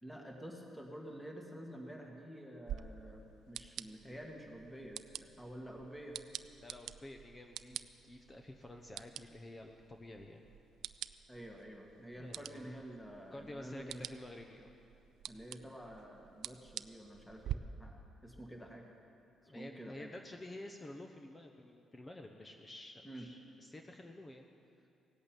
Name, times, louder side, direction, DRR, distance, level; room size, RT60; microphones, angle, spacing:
voice 1, 0.0-5.0 5.4-6.2 11.3-14.0 15.3-18.8 19.5-20.1 23.0-23.3, right 1 dB, 5° left, 1 dB, 2.0 m, -49 dB
sound 1, 2.7-17.5, right 11 dB, 75° right, 0.4 m, -48 dB
voice 2, 6.6-10.5 12.2-12.8 13.3-14.7 19.5-24.5, left 1 dB, 20° left, 3 dB, 0.9 m, -50 dB
17.5 x 8.5 x 9.2 m, 2.6 s
cardioid pair, 90°, 0 cm